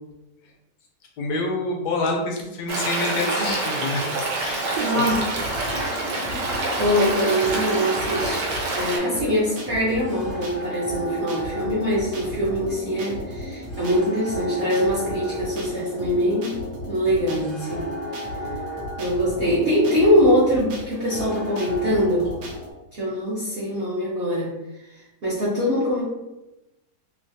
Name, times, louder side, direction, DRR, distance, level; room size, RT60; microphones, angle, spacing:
voice 1, 1.2-5.2, left 2 dB, 75° left, 1 dB, 1.1 m, -28 dB
Stream, 2.7-9.0, right 2 dB, 85° right, 1.3 m, -27 dB
voice 2, 4.8-5.3 6.3-8.5 8.7-16.6 16.9-17.9 19.0-22.3 22.9-24.5 24.8-26.0, equal, 50° right, -9 dB, 0.7 m, -23 dB
sound 1, 5.0-22.7, equal, 70° right, 1.1 m, -34 dB
sound 2, 6.4-21.9, right 1 dB, ahead, 0.4 m, -39 dB
3.2 x 2.2 x 2.6 m, 0.97 s
omnidirectional pair, 1.8 m